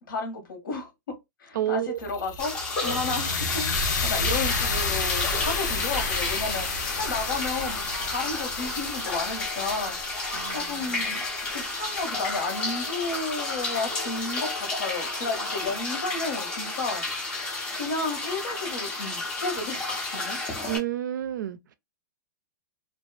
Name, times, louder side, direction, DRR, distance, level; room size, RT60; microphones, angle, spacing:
voice 1, 0.1-0.9 1.4-2.5 2.8-10.2 10.5-11.2 11.5-17.0 17.7-20.4, left 3 dB, 90° left, 1.1 m, -32 dB
voice 2, 1.5-2.0 10.3-11.2 20.7-21.7, right 12 dB, 65° right, 0.4 m, -31 dB
sound 1, 2.0-12.2, left 4 dB, 65° left, 0.6 m, -31 dB
sound 2, 2.4-20.8, left 2 dB, 10° left, 0.3 m, -32 dB
2.4 x 2.3 x 2.2 m
supercardioid pair, 175°, 11 cm